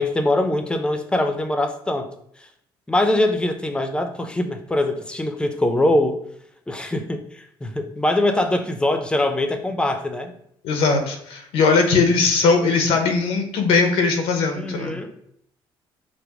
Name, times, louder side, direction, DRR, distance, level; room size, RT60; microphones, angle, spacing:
voice 1, 0.0-2.1 2.9-6.2 6.7-10.3 14.5-15.1, left 1 dB, 10° left, 6 dB, 0.6 m, -22 dB
voice 2, 10.6-14.9, left 4 dB, 85° left, 5 dB, 0.9 m, -19 dB
5.1 x 2.2 x 4.8 m, 0.70 s
cardioid pair, 110°, 9 cm